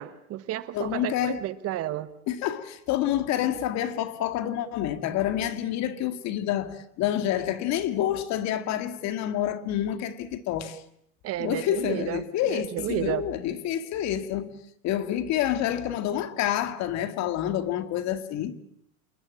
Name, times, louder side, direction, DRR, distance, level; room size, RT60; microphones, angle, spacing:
voice 1, 0.0-2.1 11.2-13.2, right 13 dB, 35° right, 1.3 m, -32 dB
voice 2, 0.7-1.5 2.3-10.8 11.4-14.6 14.8-18.6, left 11 dB, 40° left, 2.2 m, -28 dB
28.0 x 20.5 x 8.7 m
supercardioid pair, 140°, 41 cm